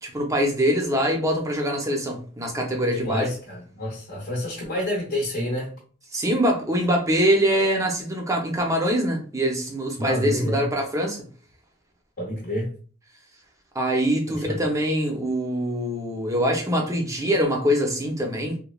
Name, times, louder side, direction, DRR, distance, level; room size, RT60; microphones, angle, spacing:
voice 1, 0.0-3.3 6.1-11.2 13.7-18.6, equal, 15° right, 0.6 m, -23 dB
voice 2, 2.9-5.7 10.0-10.6 12.2-12.7 14.5-14.6, left 1 dB, 50° left, 0.8 m, -28 dB
3.1 x 2.1 x 2.3 m
head